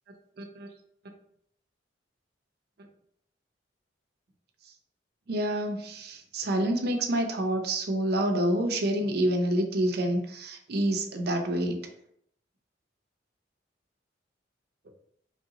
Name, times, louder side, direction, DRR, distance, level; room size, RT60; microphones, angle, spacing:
voice 1, 0.4-0.7 5.3-11.8, right 1 dB, 60° right, 4 dB, 0.6 m, -28 dB
3.2 x 2.8 x 3.9 m, 0.70 s
head